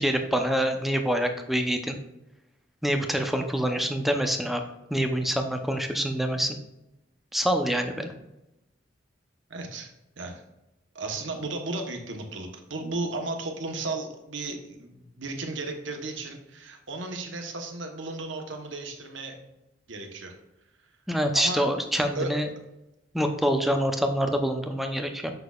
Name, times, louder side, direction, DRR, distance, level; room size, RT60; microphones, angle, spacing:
voice 1, 0.0-2.0 2.8-4.6 4.9-6.6 7.3-8.1 21.1-22.5 23.1-25.3, equal, ahead, 5 dB, 0.6 m, -26 dB
voice 2, 9.5-9.9 10.2-10.4 10.9-19.4 19.9-20.3 21.3-21.7 22.1-22.3, right 2 dB, 70° right, 3 dB, 1.1 m, -34 dB
6.7 x 6.3 x 2.4 m, 0.93 s
head